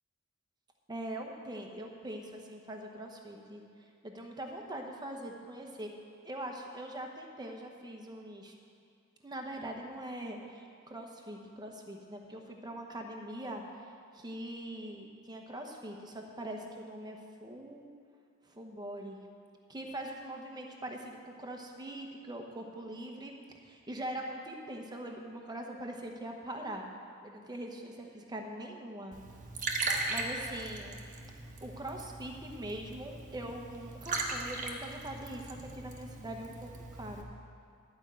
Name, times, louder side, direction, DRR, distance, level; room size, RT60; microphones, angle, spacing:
voice 1, 0.9-5.9 6.2-8.5 9.2-13.6 14.1-17.9 18.4-19.2 19.7-23.3 23.6-26.8 27.2-29.2 30.1-31.0 31.6-37.3, right 1 dB, 20° right, 2 dB, 1.0 m, -42 dB
Liquid, 29.1-37.2, right 3 dB, 40° right, 1.1 m, -39 dB
11.5 x 5.4 x 8.6 m, 2.4 s
head